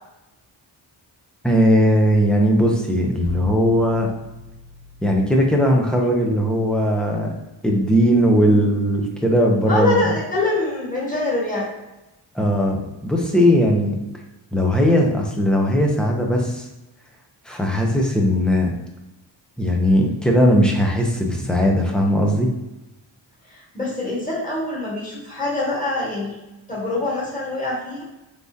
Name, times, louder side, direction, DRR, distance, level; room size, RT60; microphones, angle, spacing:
voice 1, 1.4-4.1 5.0-7.3 7.6-10.0 12.3-14.0 14.5-16.7 17.5-18.7 19.6-22.5, equal, ahead, 0 dB, 0.6 m, -18 dB
sound 1, 3.2-7.1, left 2 dB, 55° left, 1.4 m, -39 dB
voice 2, 9.6-11.7 23.5-26.3 26.7-28.0, left 2 dB, 20° left, -6 dB, 1.4 m, -24 dB
4.7 x 3.5 x 2.7 m, 0.97 s
wide cardioid pair, 170°, 45 cm